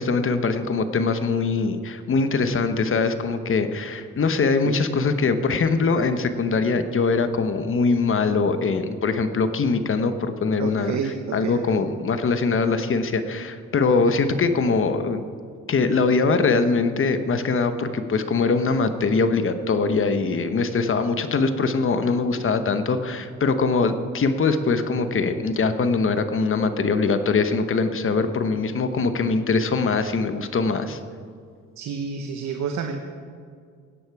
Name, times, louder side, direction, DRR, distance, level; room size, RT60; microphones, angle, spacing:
voice 1, 0.0-11.0 11.3-15.2 15.7-31.0, left 4 dB, 45° left, 9 dB, 1.1 m, -22 dB
voice 2, 10.6-11.8 31.8-33.0, right 6 dB, 70° right, 5 dB, 1.0 m, -30 dB
16.5 x 10.5 x 4.8 m, 2.2 s
cardioid pair, 90°, 30 cm